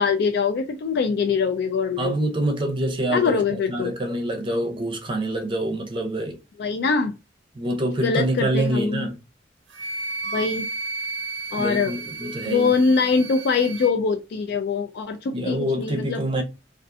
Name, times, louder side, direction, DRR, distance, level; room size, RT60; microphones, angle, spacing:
voice 1, 0.0-2.2 3.1-3.9 6.6-7.1 8.0-9.1 10.3-10.6 11.5-11.9 12.5-16.2, left 5 dB, 60° left, 0.3 m, -23 dB
voice 2, 2.0-3.4 3.7-6.4 7.6-9.2 11.6-12.7 15.3-16.4, right 1 dB, 30° right, 0.6 m, -26 dB
Wind instrument woodwind instrument, 9.7-13.9, right 4 dB, 85° right, 0.5 m, -33 dB
2.4 x 2.3 x 2.5 m
head